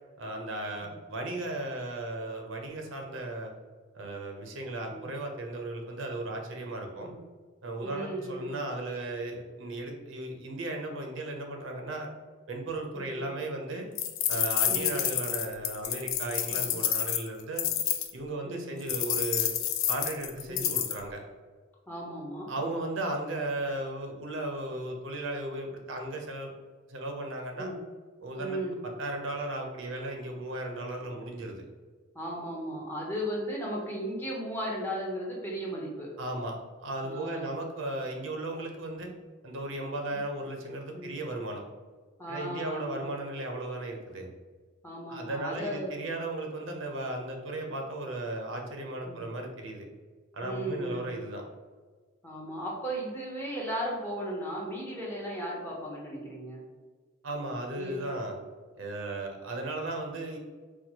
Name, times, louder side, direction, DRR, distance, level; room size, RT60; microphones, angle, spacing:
voice 1, 0.2-3.5 3.9-7.1 7.6-12.1 12.5-13.9 14.3-17.7 18.1-19.5 19.9-21.2 22.5-26.5 26.9-27.7 28.2-28.6 29.0-31.7 36.2-39.1 39.4-41.6 42.3-44.3 45.1-49.9 50.3-51.4 57.2-58.4 58.8-60.4, right 2 dB, 65° right, 2 dB, 0.6 m, -36 dB
voice 2, 7.8-8.5 12.9-13.3 14.6-15.0 16.5-16.7 18.4-18.8 20.5-20.7 21.9-22.9 27.6-27.8 28.4-28.8 32.1-36.1 37.0-37.5 40.9-41.2 42.2-43.1 44.8-46.0 49.1-49.2 50.4-51.1 52.2-56.6 57.7-58.2, equal, 10° left, -4 dB, 0.6 m, -36 dB
sound 1, 14.0-18.1 18.9-21.0, left 10 dB, 75° left, 0.3 m, -29 dB
4.3 x 2.2 x 2.8 m, 1.4 s
head